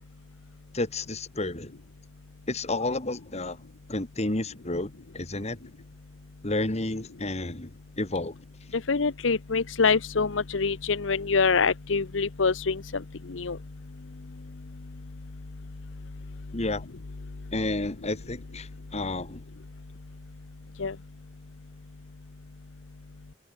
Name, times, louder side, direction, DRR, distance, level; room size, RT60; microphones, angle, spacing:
voice 1, 0.7-1.7 2.5-3.6 3.9-5.6 6.4-7.7 8.0-8.3 16.5-16.9 17.5-19.4, left 2 dB, 35° left, 2.3 m, -31 dB
voice 2, 8.9-13.0 13.3-13.6 20.8-20.9, left 4 dB, 75° left, 0.8 m, -25 dB
head